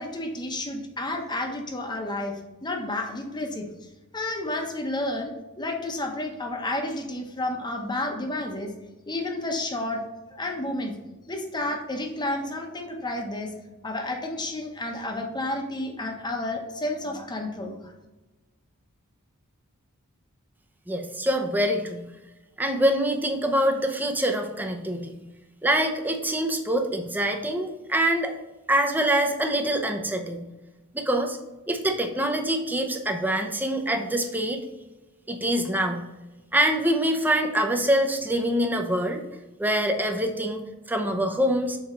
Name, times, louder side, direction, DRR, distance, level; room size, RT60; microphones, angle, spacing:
voice 1, 0.0-8.7 9.1-10.0 10.3-10.9 11.3-17.9, left 1 dB, 20° left, 3 dB, 1.0 m, -31 dB
voice 2, 20.9-22.1 22.6-25.1 25.6-28.3 28.7-30.4 30.9-31.4 31.7-34.6 35.3-36.0 36.5-39.2 39.6-40.6 40.9-41.8, right 1 dB, 10° right, 3 dB, 0.7 m, -25 dB
6.4 x 4.6 x 3.8 m, 1.1 s
head